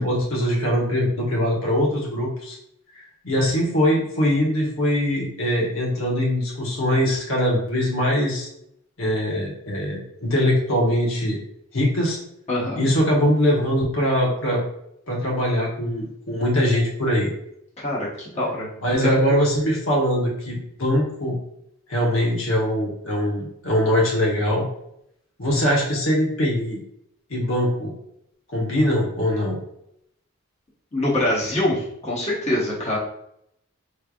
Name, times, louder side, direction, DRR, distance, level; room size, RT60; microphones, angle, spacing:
voice 1, 0.0-2.6 3.2-8.5 9.0-11.4 11.7-12.2 12.8-14.6 15.1-17.3 18.8-21.4 21.9-24.6 25.4-26.8 27.3-27.9 28.5-29.6, equal, 65° left, -3 dB, 1.1 m, -22 dB
voice 2, 12.5-12.9 17.8-18.7 19.0-19.1 30.9-33.0, left 1 dB, 30° left, -6 dB, 1.1 m, -24 dB
4.6 x 3.3 x 2.4 m, 0.74 s
head